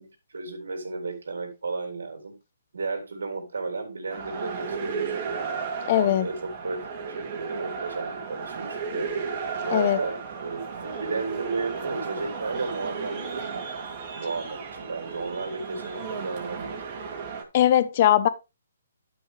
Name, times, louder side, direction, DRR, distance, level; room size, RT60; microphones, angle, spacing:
voice 1, 0.0-2.3 2.7-5.3 5.9-9.1 9.6-13.7 14.1-16.8, right 3 dB, 80° right, 3.9 m, -33 dB
sound 1, 4.1-17.4, right 5 dB, 35° right, 2.5 m, -34 dB
voice 2, 5.9-6.3 9.7-10.0 17.5-18.3, left 11 dB, 40° left, 0.9 m, -20 dB
11.5 x 6.2 x 3.4 m
hypercardioid pair, 155°, 0 cm